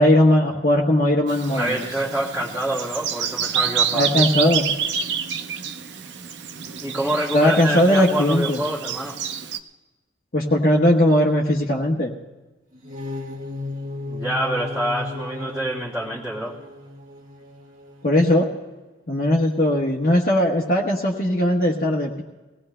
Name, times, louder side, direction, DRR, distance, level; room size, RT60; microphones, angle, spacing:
voice 1, 0.0-1.8 3.9-4.7 7.3-8.6 10.3-12.1 18.0-18.5 19.1-22.2, left 1 dB, 50° left, -3 dB, 1.2 m, -19 dB
Bird vocalization bird call bird song, 1.3-9.6, right 7 dB, 70° right, 0.6 m, -28 dB
voice 2, 1.5-4.3 6.8-9.2 14.1-16.5, right 1 dB, 10° right, -7 dB, 1.6 m, -26 dB
sound 1, 12.7-18.7, left 2 dB, 45° right, 1.6 m, -35 dB
23.0 x 18.0 x 2.2 m, 1.2 s
head